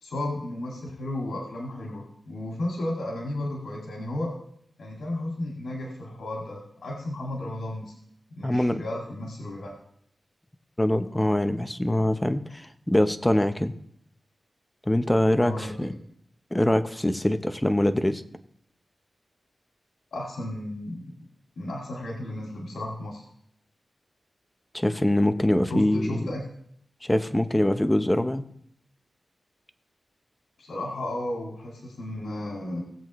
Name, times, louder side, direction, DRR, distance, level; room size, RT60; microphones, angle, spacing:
voice 1, 0.0-4.3 4.8-7.9 8.4-9.7 15.4-15.9 20.1-21.0 21.6-23.2 25.7-26.4 30.6-32.8, left 1 dB, 90° left, -1 dB, 2.1 m, -33 dB
voice 2, 8.4-8.8 10.8-13.7 14.9-15.9 16.5-18.2 24.7-26.3 27.0-28.4, left 1 dB, 10° left, 9 dB, 0.8 m, -23 dB
18.0 x 7.8 x 3.1 m, 0.70 s
cardioid pair, 70°, 0 cm